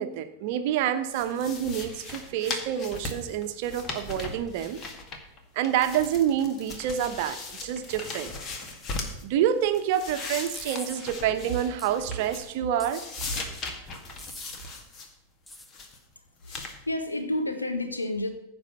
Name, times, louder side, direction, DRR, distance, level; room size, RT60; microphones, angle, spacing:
voice 1, 0.0-4.8 5.5-8.3 9.2-13.0, right 10 dB, 50° right, 9 dB, 1.1 m, -27 dB
sound 1, 1.1-5.4 5.6-9.2 9.6-12.6 12.8-15.1 15.5-16.0 16.4-16.8, left 3 dB, 30° left, 1.9 m, -38 dB
sound 2, 10.5-11.0 11.8-11.9 12.8-13.3 14.2-14.6 15.5-15.7, left 1 dB, 5° left, 0.8 m, -43 dB
voice 2, 16.4-18.3, left 1 dB, 80° left, 7 dB, 1.4 m, -30 dB
15.0 x 5.3 x 6.7 m, 0.82 s
figure-of-eight pair, 90°, 0 cm